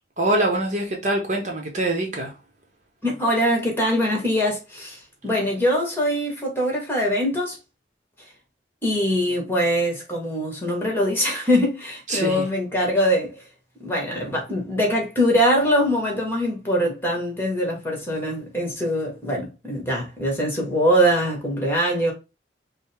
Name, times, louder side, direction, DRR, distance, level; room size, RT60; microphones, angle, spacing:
voice 1, 0.2-2.3 12.1-12.4, right 1 dB, 40° right, 0.9 m, -24 dB
voice 2, 3.0-7.6 8.8-13.4 13.8-22.1, equal, 15° left, 1.3 m, -23 dB
5.2 x 2.1 x 3.4 m
head